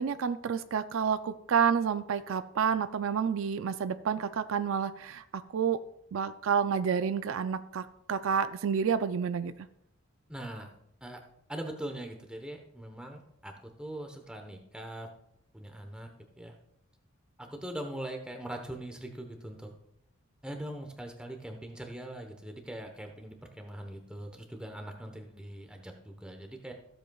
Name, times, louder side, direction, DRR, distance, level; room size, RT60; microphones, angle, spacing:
voice 1, 0.0-5.8 6.1-9.5, right 7 dB, 70° right, 12 dB, 0.4 m, -29 dB
voice 2, 10.3-10.7 11.0-11.2 11.5-15.1 15.5-16.1 16.4-16.6 17.4-19.7 20.4-26.7, right 1 dB, 5° right, 3 dB, 1.0 m, -41 dB
15.0 x 7.9 x 2.3 m, 0.78 s
head